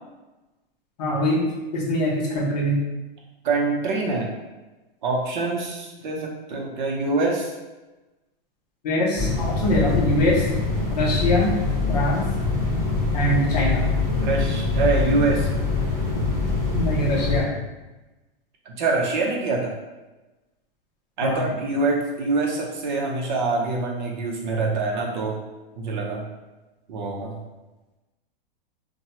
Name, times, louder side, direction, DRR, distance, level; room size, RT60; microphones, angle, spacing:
voice 1, 1.0-1.4 1.7-2.8 8.8-10.5 10.9-11.5 11.9-12.2 13.1-13.8 16.7-17.5 21.2-21.5, left 1 dB, 45° left, -3 dB, 0.7 m, -23 dB
voice 2, 3.4-4.3 5.0-7.5 14.2-15.5 18.7-19.7 21.2-25.4 25.8-26.2 26.9-27.4, right 3 dB, 55° right, 0 dB, 0.6 m, -25 dB
sound 1, 9.2-17.4, left 3 dB, 10° right, 0.9 m, -24 dB
2.9 x 2.2 x 2.8 m, 1.1 s
supercardioid pair, 170°, 29 cm